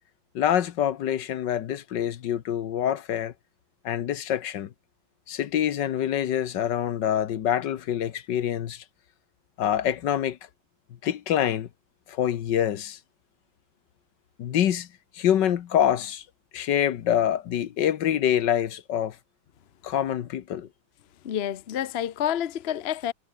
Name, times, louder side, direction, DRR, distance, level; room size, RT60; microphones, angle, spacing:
voice 1, 0.3-3.3 3.8-4.7 5.3-8.8 9.6-10.4 11.0-11.7 12.1-13.0 14.4-14.9 15.1-16.2 16.5-19.2 19.8-20.7, left 10 dB, 70° left, 1.7 m, -25 dB
voice 2, 21.2-23.1, left 10 dB, 55° left, 0.7 m, -28 dB
omnidirectional pair, 2.0 m